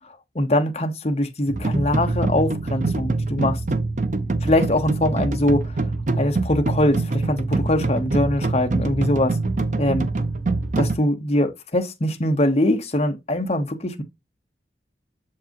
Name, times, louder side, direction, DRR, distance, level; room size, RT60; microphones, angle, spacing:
voice 1, 0.3-3.6 4.4-5.7 6.2-9.4 9.8-10.1 10.8-14.0, left 1 dB, 35° left, 1.0 m, -22 dB
sound 1, 1.5-11.0, right 3 dB, 45° right, 0.6 m, -24 dB
6.9 x 4.7 x 2.9 m
head